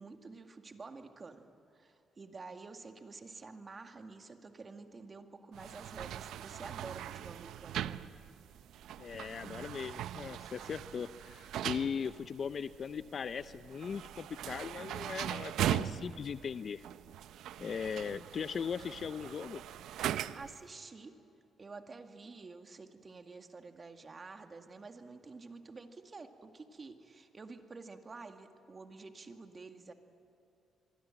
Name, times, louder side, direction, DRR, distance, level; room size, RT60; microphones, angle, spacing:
voice 1, 0.0-1.4 1.7-8.1 20.3-21.2 21.6-29.9, right 4 dB, 35° right, 5 dB, 2.1 m, -49 dB
sound 1, 5.5-20.6, right 11 dB, 80° right, 0.6 m, -40 dB
voice 2, 9.0-16.8 17.6-19.6, left 6 dB, 50° left, 14 dB, 0.5 m, -39 dB
25.5 x 23.0 x 9.0 m, 2.6 s
cardioid pair, 90°, 0 cm